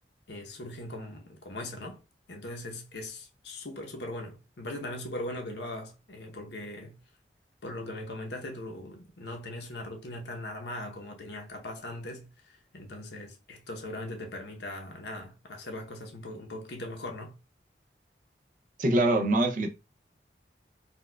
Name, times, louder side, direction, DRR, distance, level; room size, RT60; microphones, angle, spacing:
voice 1, 0.3-2.0 2.3-7.0 7.6-17.3, left 1 dB, 80° left, 0.8 m, -40 dB
voice 2, 18.8-19.7, right 1 dB, 45° right, 0.5 m, -24 dB
4.1 x 2.3 x 2.2 m
head